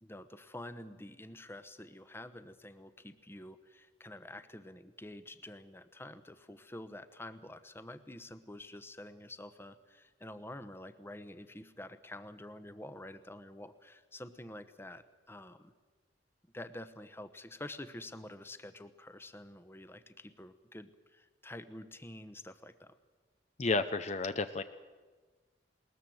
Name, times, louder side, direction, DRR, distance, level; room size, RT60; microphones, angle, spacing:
voice 1, 0.0-15.7 16.5-22.9, left 1 dB, 15° left, 11 dB, 1.0 m, -48 dB
voice 2, 23.6-24.6, left 3 dB, 40° left, 10 dB, 0.7 m, -31 dB
20.5 x 19.5 x 7.8 m, 1.4 s
head